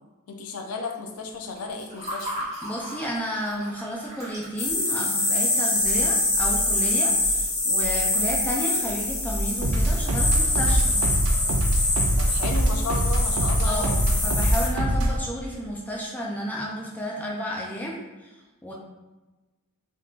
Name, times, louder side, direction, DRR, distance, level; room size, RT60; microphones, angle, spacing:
voice 1, 0.3-2.5 12.2-13.9, left 4 dB, 85° left, 3 dB, 0.5 m, -34 dB
Water / Fill (with liquid), 1.4-6.5, equal, 30° right, 1.3 m, -38 dB
voice 2, 2.6-11.0 13.6-18.7, equal, 5° left, -3 dB, 0.4 m, -32 dB
sound 1, 4.6-14.7, left 2 dB, 65° left, 1.1 m, -25 dB
sound 2, 9.6-15.2, right 1 dB, 70° right, 0.4 m, -23 dB
3.5 x 2.7 x 2.4 m, 1.2 s
head